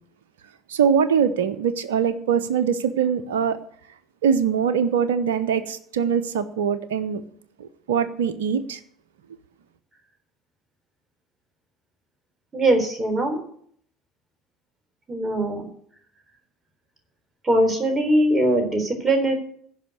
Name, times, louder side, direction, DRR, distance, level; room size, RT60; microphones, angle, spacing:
voice 1, 0.7-3.6 4.2-7.2 7.6-8.8, right 7 dB, 80° right, 13 dB, 0.7 m, -22 dB
voice 2, 12.5-13.4 15.1-15.6 17.4-19.3, right 1 dB, 20° right, 4 dB, 3.9 m, -21 dB
14.5 x 5.7 x 8.0 m, 0.63 s
hypercardioid pair, 60°, 0 cm